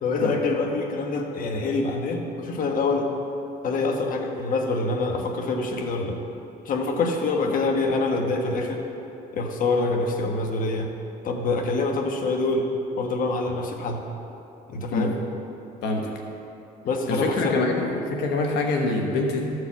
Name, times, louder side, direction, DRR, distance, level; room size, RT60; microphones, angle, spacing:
voice 1, 0.0-3.1 3.6-6.2 6.6-8.8 9.3-10.9 11.2-12.7 13.0-14.0 14.7-15.1 16.8-17.6, left 3 dB, 55° left, 2 dB, 1.2 m, -25 dB
voice 2, 17.1-19.4, left 3 dB, 85° left, 1 dB, 1.1 m, -25 dB
13.5 x 4.8 x 7.1 m, 2.8 s
cardioid pair, 110°, 17 cm